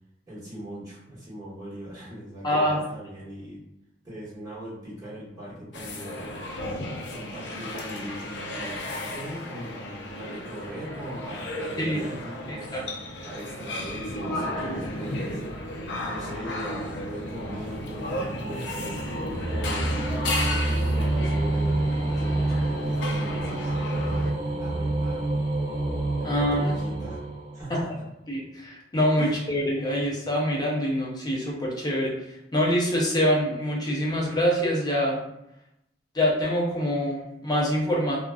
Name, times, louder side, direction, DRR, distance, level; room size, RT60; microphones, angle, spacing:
voice 1, 0.3-3.6 4.0-6.4 7.1-12.7 13.2-15.4 16.0-20.0 20.4-25.4 26.3-27.2 27.5-28.0 29.2-29.4, right 1 dB, 20° right, -10 dB, 1.2 m, -40 dB
voice 2, 2.4-2.8 11.8-12.0 12.5-12.8 26.2-26.8 27.7-27.8 28.3-35.2 36.1-38.2, equal, 25° left, -3 dB, 0.5 m, -25 dB
sound 1, 5.7-24.3, left 1 dB, 75° left, 0.4 m, -34 dB
sound 2, 17.0-27.9, right 2 dB, 35° right, 0.7 m, -28 dB
2.4 x 2.1 x 2.3 m, 0.84 s
head